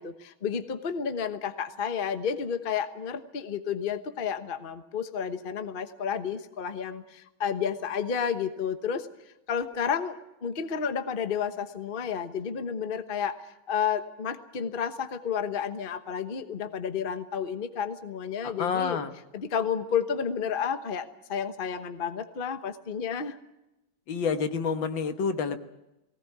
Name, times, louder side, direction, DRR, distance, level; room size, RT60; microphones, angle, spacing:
voice 1, 0.0-9.1 9.5-19.0 19.3-23.4, left 7 dB, 35° left, 10 dB, 1.1 m, -31 dB
voice 2, 18.4-19.1 24.1-25.6, left 6 dB, 70° left, 9 dB, 2.0 m, -28 dB
20.0 x 18.5 x 9.4 m, 0.94 s
omnidirectional pair, 2.2 m